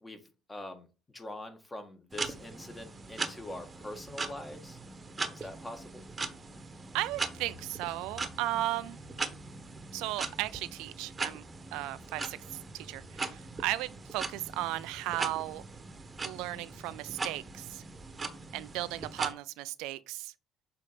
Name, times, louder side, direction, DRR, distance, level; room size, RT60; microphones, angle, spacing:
voice 1, 0.0-4.8 5.3-6.0, left 1 dB, 20° left, 1.4 m, -44 dB
sound 1, 2.1-19.3, right 3 dB, 30° right, 1.0 m, -40 dB
voice 2, 6.9-9.0 9.9-15.6 16.2-17.8 18.5-20.3, right 16 dB, 80° right, 0.4 m, -36 dB
6.7 x 2.8 x 5.0 m
supercardioid pair, 75°, 0 cm